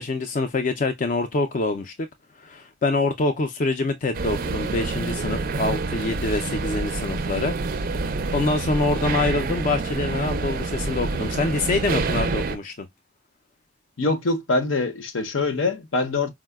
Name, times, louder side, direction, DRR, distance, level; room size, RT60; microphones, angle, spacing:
voice 1, 0.0-2.1 2.4-7.5 8.3-12.9, left 3 dB, 40° left, 0.4 m, -25 dB
sound 1, 4.1-12.6, right 3 dB, 45° right, 0.4 m, -27 dB
voice 2, 14.0-16.3, left 3 dB, 75° left, 0.7 m, -24 dB
4.6 x 2.1 x 2.2 m
head